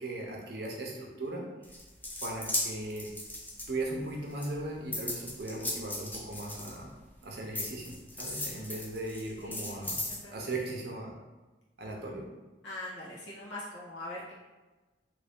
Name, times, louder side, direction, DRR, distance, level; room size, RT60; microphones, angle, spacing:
voice 1, 0.0-1.4 2.2-3.1 3.7-6.9 7.2-11.1 11.8-12.3, right 2 dB, 60° right, -1 dB, 0.7 m, -38 dB
sound 1, 1.6-4.0 4.4-7.1 7.5-10.2, left 1 dB, 10° left, 0.4 m, -37 dB
voice 2, 9.4-9.8 10.2-10.3 12.6-14.3, left 1 dB, 80° left, -6 dB, 1.1 m, -42 dB
3.0 x 2.7 x 3.4 m, 1.2 s
head